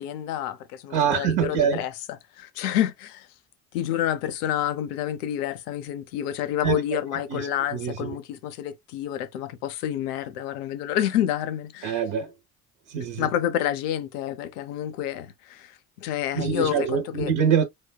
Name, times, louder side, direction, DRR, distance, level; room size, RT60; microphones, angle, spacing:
voice 1, 0.0-1.9 2.4-3.3 3.7-12.0 13.2-17.3, left 11 dB, 80° left, 0.7 m, -29 dB
voice 2, 0.9-1.8 6.6-6.8 7.3-8.2 11.8-12.3 12.9-13.3 16.3-17.6, right 7 dB, 60° right, 1.0 m, -25 dB
5.0 x 2.2 x 2.2 m
hypercardioid pair, 70°, 45 cm